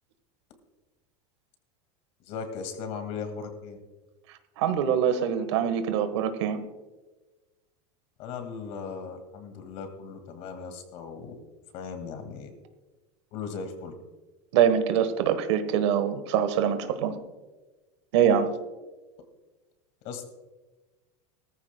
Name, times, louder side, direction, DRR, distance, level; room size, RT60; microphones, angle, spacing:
voice 1, 2.2-3.8 8.2-11.4 11.7-12.5 13.3-13.9 20.0-20.2, left 5 dB, 45° left, 7 dB, 2.0 m, -37 dB
voice 2, 4.6-6.6 14.5-17.2 18.1-18.5, right 8 dB, 75° right, 10 dB, 1.3 m, -24 dB
18.0 x 14.0 x 2.2 m, 1.2 s
supercardioid pair, 155°, 15 cm